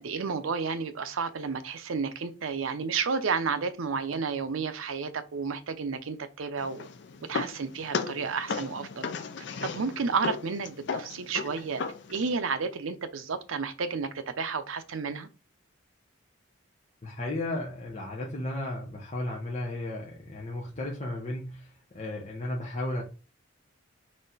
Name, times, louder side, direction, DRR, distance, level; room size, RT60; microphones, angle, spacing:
voice 1, 0.0-6.9 7.3-9.1 9.6-11.8 12.1-15.3, right 5 dB, 85° right, 0.6 m, -31 dB
sound 1, 6.6-12.4, left 5 dB, 60° left, 0.5 m, -36 dB
voice 2, 17.0-23.0, left 1 dB, 35° left, 0.9 m, -34 dB
4.2 x 3.1 x 3.9 m
head